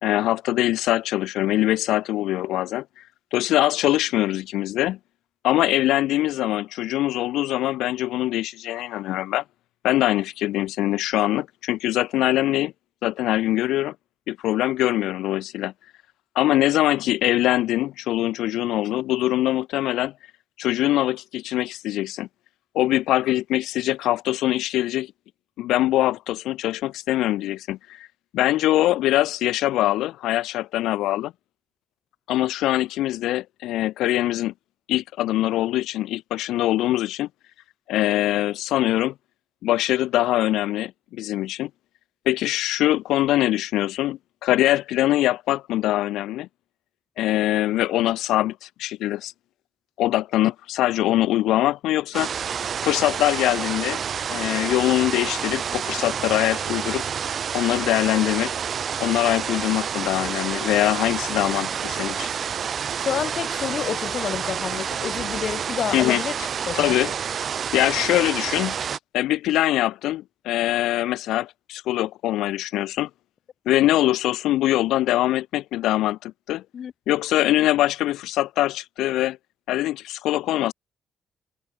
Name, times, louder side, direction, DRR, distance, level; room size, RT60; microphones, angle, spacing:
voice 1, 0.0-3.0 3.3-5.0 5.4-9.4 9.8-12.7 13.0-13.9 14.3-15.7 16.3-20.1 20.6-22.3 22.7-25.1 25.6-28.1 28.3-31.3 32.3-34.5 34.9-37.3 37.9-39.1 39.6-41.7 42.2-46.5 47.2-49.3 50.0-52.3 52.8-54.0 54.3-57.0 57.5-58.5 59.0-62.3 65.9-66.2 66.7-67.1 67.7-68.8 69.1-73.1 73.6-76.6 77.1-79.4 79.7-80.7, left 15 dB, 90° left, 2.9 m, -23 dB
sound 1, 52.1-69.0, right 7 dB, 55° right, 3.4 m, -29 dB
voice 2, 63.0-66.3 66.7-66.9 76.7-76.9, left 8 dB, 55° left, 1.8 m, -29 dB
cardioid pair, 90°, 0 cm